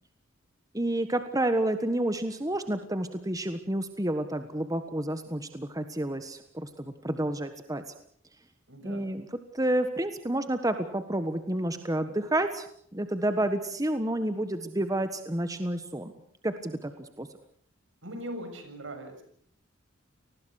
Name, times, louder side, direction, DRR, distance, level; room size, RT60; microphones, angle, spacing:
voice 1, 0.7-7.8 8.8-9.3 9.5-12.7 12.9-16.1 16.4-17.3, right 1 dB, 20° right, 9 dB, 1.4 m, -30 dB
voice 2, 8.7-9.1 18.0-19.2, right 1 dB, 70° right, 7 dB, 6.8 m, -40 dB
29.5 x 20.0 x 6.5 m, 0.63 s
head